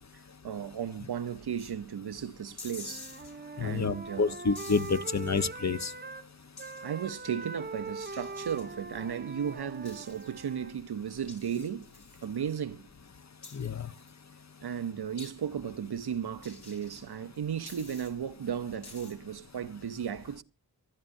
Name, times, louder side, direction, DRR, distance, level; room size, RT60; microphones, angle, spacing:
voice 1, 0.4-3.1 3.6-4.4 6.8-11.9 12.2-12.9 14.6-20.4, right 8 dB, 80° right, 0.7 m, -35 dB
sound 1, 1.6-1.7 2.6-3.3 4.6-5.4 6.6-6.9 8.0-8.6 9.9-10.3 11.3-12.3 13.4-14.1 15.2-15.3 16.4-17.1 17.7-18.1 18.8-19.1, left 3 dB, 85° left, 4.0 m, -48 dB
Wind instrument woodwind instrument, 2.8-6.3 6.6-10.8, right 3 dB, 25° right, 0.8 m, -42 dB
voice 2, 3.6-5.9 13.5-13.9, left 4 dB, 45° left, 0.8 m, -29 dB
25.5 x 11.5 x 2.6 m
wide cardioid pair, 55°, 38 cm